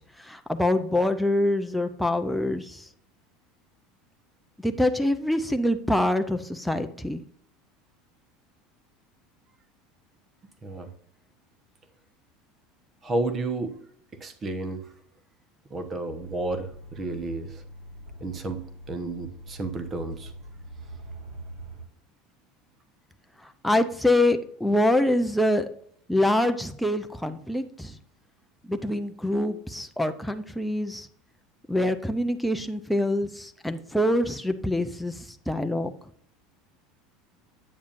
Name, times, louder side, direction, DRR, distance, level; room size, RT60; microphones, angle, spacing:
voice 1, 0.2-2.8 4.6-7.2 23.6-25.7 26.1-27.9 28.7-31.1 31.7-35.1 35.5-35.9, left 1 dB, ahead, 6 dB, 0.5 m, -25 dB
voice 2, 13.0-13.8 14.1-14.9 15.7-17.6 18.2-18.6 18.9-20.3, right 2 dB, 25° right, 9 dB, 1.0 m, -31 dB
sound 1, 16.2-21.8, right 1 dB, 55° right, 3.1 m, -43 dB
8.6 x 7.1 x 2.5 m, 0.63 s
supercardioid pair, 130°, 0 cm